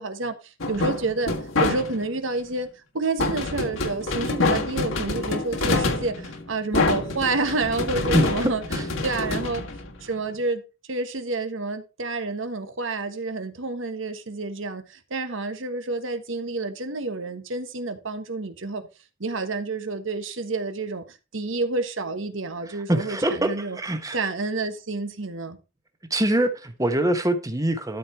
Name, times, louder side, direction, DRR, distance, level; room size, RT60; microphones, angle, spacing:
voice 1, 0.0-1.3 1.6-9.6 10.0-10.6 10.9-18.9 19.2-23.8 24.1-25.6, right 3 dB, 70° right, 1.4 m, -29 dB
sound 1, 0.6-2.2 3.2-10.3, left 3 dB, 75° left, 1.6 m, -26 dB
voice 2, 8.1-8.8 22.9-24.2 26.1-28.0, right 1 dB, 15° right, 1.1 m, -24 dB
12.5 x 4.9 x 4.4 m
head